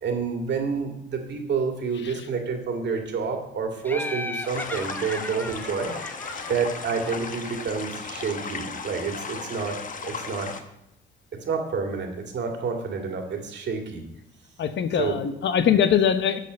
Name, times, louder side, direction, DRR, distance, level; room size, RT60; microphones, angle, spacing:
voice 1, 0.0-5.9 6.5-9.7 10.0-10.5 11.3-14.0 15.0-15.2, right 5 dB, 60° right, 3 dB, 2.0 m, -29 dB
Laughter, 3.8-7.5, left 2 dB, 10° left, 0.7 m, -36 dB
sound 1, 4.5-10.6, left 5 dB, 40° left, 1.1 m, -36 dB
voice 2, 14.6-16.4, left 8 dB, 65° left, 10 dB, 0.9 m, -22 dB
11.5 x 4.2 x 7.7 m, 0.82 s
cardioid pair, 90°, 20 cm